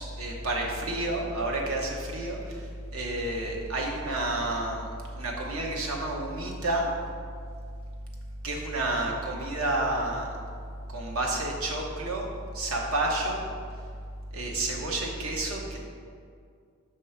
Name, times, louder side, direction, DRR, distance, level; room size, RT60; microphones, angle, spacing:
voice 1, 0.0-2.7 2.9-4.8 5.2-6.9 8.4-10.3 10.9-12.3 12.5-13.5 14.3-15.8, right 2 dB, 75° right, -1 dB, 0.9 m, -30 dB
5.4 x 3.2 x 5.6 m, 2.2 s
head